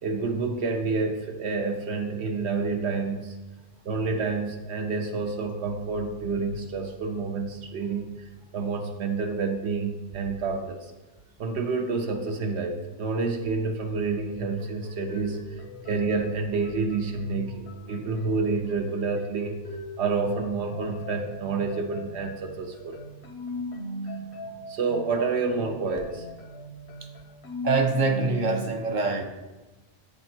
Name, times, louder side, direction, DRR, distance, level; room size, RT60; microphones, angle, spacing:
voice 1, 0.0-3.4 3.9-10.9 11.4-19.6 20.0-23.0 23.5-23.6 24.7-26.3, right 4 dB, 85° right, 3 dB, 0.9 m, -29 dB
sound 1, 14.1-20.3 20.7-28.7, left 1 dB, 85° left, 1.0 m, -40 dB
voice 2, 27.6-29.2, right 3 dB, 55° right, 4 dB, 0.7 m, -24 dB
8.4 x 3.5 x 4.3 m, 1.1 s
omnidirectional pair, 1.1 m